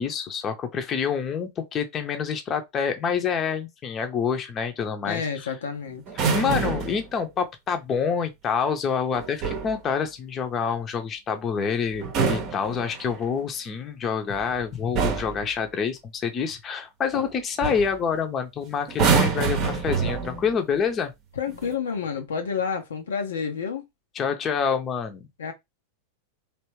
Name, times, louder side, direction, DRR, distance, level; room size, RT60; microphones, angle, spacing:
voice 1, 0.0-5.5 6.2-21.1 24.2-25.3, left 6 dB, 25° left, 0.8 m, -27 dB
voice 2, 5.0-6.0 21.4-23.9 25.4-25.5, left 6 dB, 65° left, 0.6 m, -29 dB
sound 1, 6.1-7.0 9.1-9.8 11.9-13.3 14.3-14.6 14.9-15.4 17.1-17.3 17.6-17.9 18.9-20.5 21.5-21.7, right 5 dB, 35° right, 0.8 m, -26 dB
3.3 x 2.9 x 3.0 m
figure-of-eight pair, 90°, 0 cm